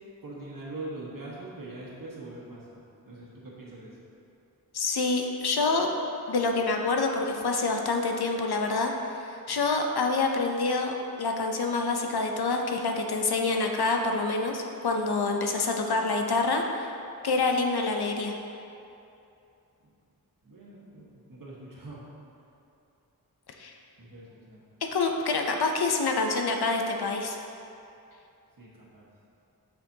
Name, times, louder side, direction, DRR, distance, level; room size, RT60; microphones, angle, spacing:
voice 1, 0.2-4.0 9.5-9.6 19.8-19.9 20.4-22.1 24.0-24.6 28.6-29.1, right 2 dB, 60° right, -5 dB, 1.4 m, -43 dB
voice 2, 4.7-5.9 6.3-16.9 17.2-18.3 23.6-23.7 24.9-27.4, left 3 dB, 85° left, 3 dB, 0.7 m, -27 dB
7.3 x 6.0 x 2.8 m, 2.7 s
wide cardioid pair, 80°, 37 cm